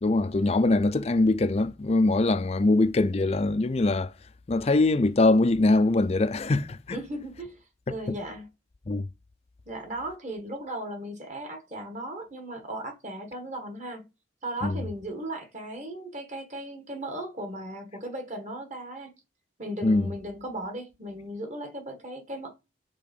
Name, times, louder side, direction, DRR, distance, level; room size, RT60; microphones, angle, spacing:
voice 1, 0.0-4.1 4.5-7.0 8.1-8.2 8.9-9.1 14.6-14.8 19.8-20.1, left 2 dB, 35° left, 0.5 m, -23 dB
voice 2, 6.9-7.6 7.9-8.5 9.7-14.0 14.4-19.1 19.6-22.5, right 1 dB, 40° right, 1.6 m, -37 dB
6.8 x 3.7 x 5.4 m
head